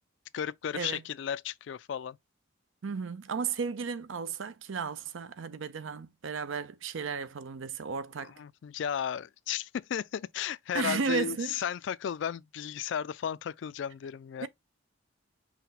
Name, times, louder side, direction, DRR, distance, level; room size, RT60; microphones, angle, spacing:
voice 1, 0.3-2.2 8.2-14.5, left 8 dB, 65° left, 0.3 m, -34 dB
voice 2, 2.8-8.3 10.7-11.5 14.4-14.5, right 5 dB, 80° right, 0.5 m, -34 dB
5.9 x 2.2 x 4.0 m
head